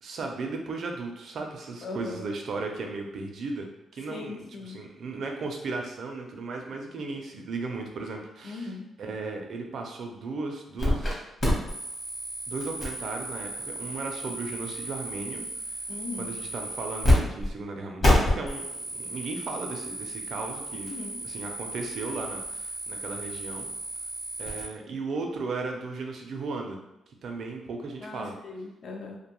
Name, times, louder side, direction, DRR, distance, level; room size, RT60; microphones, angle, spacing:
voice 1, 0.0-8.7 9.0-11.2 12.5-15.4 16.2-20.9 21.2-23.7 24.4-26.8 27.2-28.3, right 3 dB, 55° right, 2 dB, 0.4 m, -36 dB
voice 2, 1.8-2.3 4.1-4.8 8.4-8.9 15.9-16.3 20.9-21.2 28.0-29.2, left 3 dB, 50° left, 3 dB, 0.4 m, -39 dB
sound 1, 10.8-11.1 11.4-17.1 17.4-17.5 18.0-24.6, left 1 dB, 35° left, 0.9 m, -30 dB
2.5 x 2.2 x 2.9 m, 0.88 s
cardioid pair, 140°, 0 cm